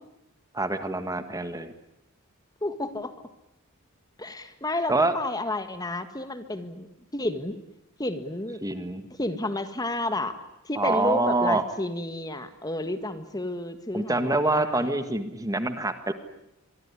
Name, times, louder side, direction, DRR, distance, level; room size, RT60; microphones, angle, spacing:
voice 1, 0.5-1.7 4.9-5.1 8.6-9.1 10.8-11.6 13.9-16.1, right 2 dB, 15° right, 9 dB, 1.6 m, -26 dB
voice 2, 2.6-3.1 4.2-6.9 7.1-7.6 8.0-8.6 9.2-10.4 10.6-14.9, left 1 dB, 20° left, 9 dB, 1.6 m, -31 dB
24.5 x 24.0 x 9.8 m, 0.86 s
head